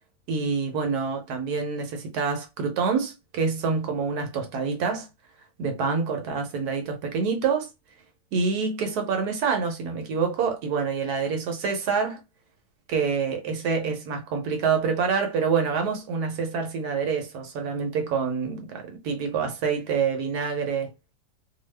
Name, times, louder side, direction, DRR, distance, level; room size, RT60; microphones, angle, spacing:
voice 1, 0.3-5.1 5.6-7.7 8.3-12.2 12.9-20.9, right 5 dB, 70° right, 1.1 m, -26 dB
2.7 x 2.3 x 3.2 m
omnidirectional pair, 1.9 m